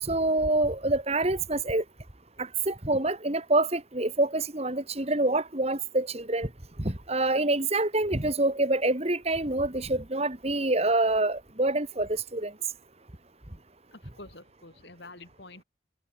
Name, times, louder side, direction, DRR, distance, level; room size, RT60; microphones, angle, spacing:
voice 1, 0.0-1.8 2.4-6.5 6.8-12.5, right 2 dB, 30° right, 2.3 m, -26 dB
voice 2, 13.9-15.6, left 2 dB, 60° left, 4.3 m, -48 dB
head